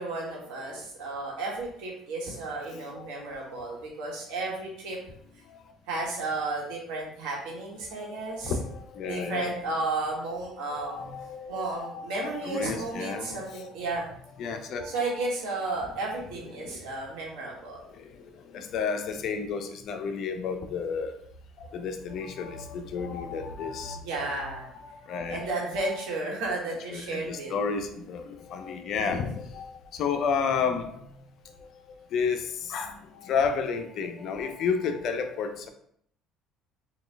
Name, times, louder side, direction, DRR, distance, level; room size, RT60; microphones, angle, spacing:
voice 1, 0.0-5.0 5.9-8.6 9.0-11.0 11.5-14.1 14.8-17.8 23.9-24.7 25.3-27.6 28.9-29.2, right 2 dB, 85° right, -2 dB, 1.3 m, -33 dB
voice 2, 2.7-3.1 3.5-3.7 5.5-5.6 8.1-9.6 10.7-13.7 14.4-15.0 16.6-16.8 18.0-21.2 21.6-24.5 24.8-25.4 26.9-31.0 31.6-31.7 32.1-35.7, left 6 dB, 55° left, 7 dB, 0.5 m, -32 dB
4.1 x 2.3 x 3.3 m, 0.67 s
cardioid pair, 125°, 0 cm